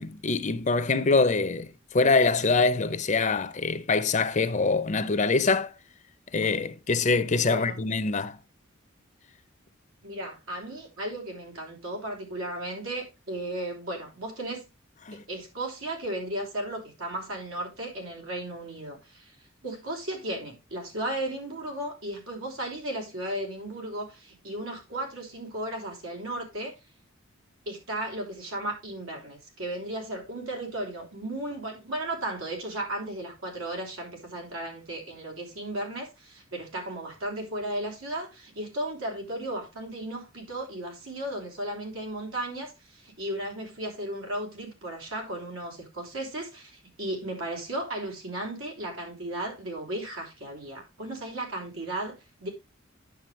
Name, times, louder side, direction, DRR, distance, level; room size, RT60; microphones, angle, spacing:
voice 1, 0.0-5.7 6.3-8.4 15.1-15.2, left 3 dB, 35° left, 0.6 m, -24 dB
voice 2, 7.5-7.8 10.0-14.7 15.3-19.3 19.6-26.7 27.6-52.5, right 1 dB, 85° right, 3.4 m, -35 dB
9.4 x 6.6 x 3.2 m
head